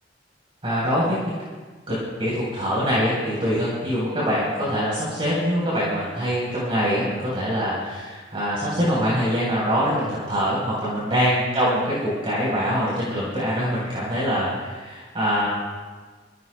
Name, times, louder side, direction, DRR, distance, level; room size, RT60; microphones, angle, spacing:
voice 1, 0.6-1.2 1.9-15.5, equal, 30° right, -7 dB, 4.0 m, -24 dB
25.5 x 16.5 x 2.2 m, 1.4 s
head